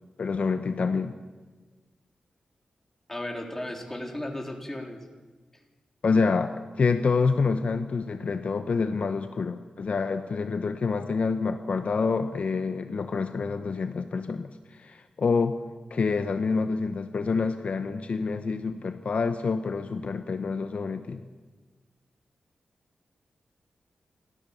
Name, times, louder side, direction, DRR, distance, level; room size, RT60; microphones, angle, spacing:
voice 1, 0.2-1.2 6.0-15.6 15.9-21.3, left 4 dB, 60° left, 9 dB, 1.0 m, -27 dB
voice 2, 3.1-5.1, left 1 dB, 15° left, 2 dB, 4.0 m, -35 dB
28.5 x 14.0 x 7.1 m, 1.3 s
cardioid pair, 65°, 2 cm